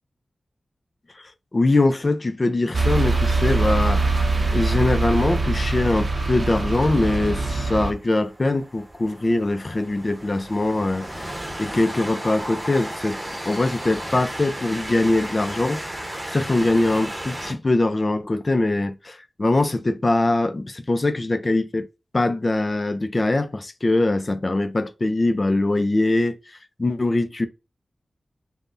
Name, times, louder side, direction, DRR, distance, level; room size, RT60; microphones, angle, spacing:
voice 1, 1.5-4.3 4.5-13.2 13.5-21.9 22.1-27.5, left 2 dB, 45° left, 0.4 m, -22 dB
sound 1, 2.7-7.9, right 3 dB, 55° right, 0.5 m, -22 dB
Train, 7.8-17.5, right 1 dB, 20° right, 0.9 m, -34 dB
3.3 x 2.0 x 2.6 m
cardioid pair, 40°, 0 cm